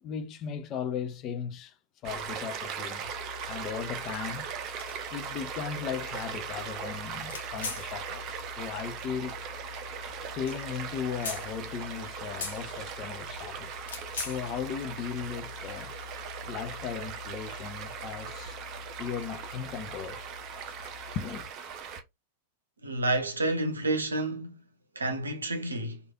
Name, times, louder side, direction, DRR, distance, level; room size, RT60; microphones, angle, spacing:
voice 1, 0.0-1.7 2.0-3.1 3.5-4.5 5.1-9.4 10.3-13.7 14.2-15.9 16.5-18.6 19.0-20.3 21.1-21.5, left 7 dB, 35° left, 0.5 m, -37 dB
Stream, 2.0-22.0, right 7 dB, 40° right, 0.6 m, -39 dB
sound 1, 3.0-21.5, left 5 dB, 65° left, 0.9 m, -44 dB
voice 2, 22.8-24.6 25.0-26.0, right 2 dB, 75° right, 0.7 m, -29 dB
3.2 x 2.4 x 2.3 m
figure-of-eight pair, 90°, 0 cm